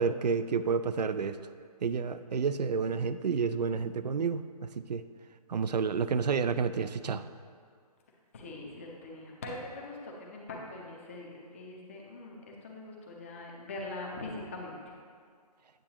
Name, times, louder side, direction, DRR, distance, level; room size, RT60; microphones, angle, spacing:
voice 1, 0.0-1.4 1.8-5.0 5.5-7.2, right 5 dB, 80° right, 12 dB, 0.5 m, -30 dB
voice 2, 8.3-14.8, left 2 dB, 20° left, -1 dB, 0.7 m, -42 dB
9.1 x 7.5 x 2.9 m, 2.1 s
hypercardioid pair, 170°, 21 cm